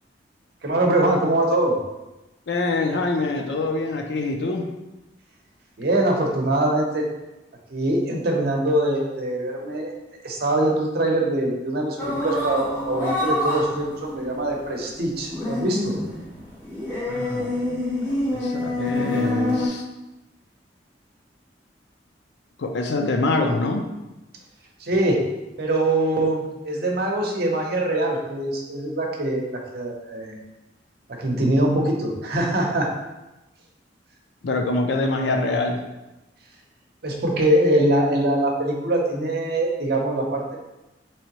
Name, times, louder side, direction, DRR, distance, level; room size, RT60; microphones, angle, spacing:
voice 1, 0.6-1.8 5.8-7.0 7.7-9.9 10.2-16.0 24.8-25.2 25.6-30.4 31.2-32.9 37.0-40.6, right 1 dB, 60° right, 0 dB, 0.7 m, -23 dB
voice 2, 2.5-4.6 17.1-19.8 22.6-23.9 34.4-35.8, left 2 dB, 70° left, 4 dB, 0.4 m, -25 dB
sound 1, 12.0-19.7, left 1 dB, 15° left, 1.2 m, -27 dB
3.6 x 3.1 x 2.9 m, 1.0 s
head